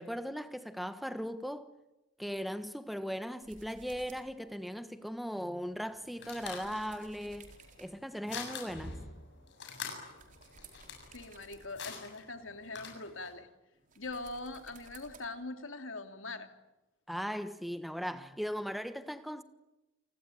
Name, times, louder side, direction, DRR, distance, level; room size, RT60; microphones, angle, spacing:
voice 1, 0.0-1.7 2.2-7.5 7.8-9.0 17.1-19.4, equal, ahead, 1.3 m, -38 dB
sound 1, 3.4-13.2 13.7-15.2, right 4 dB, 40° right, 4.4 m, -59 dB
sound 2, 5.7-13.4, left 5 dB, 60° left, 7.2 m, -46 dB
voice 2, 11.1-13.5 14.0-16.5, left 2 dB, 90° left, 2.9 m, -42 dB
29.0 x 20.0 x 9.2 m
head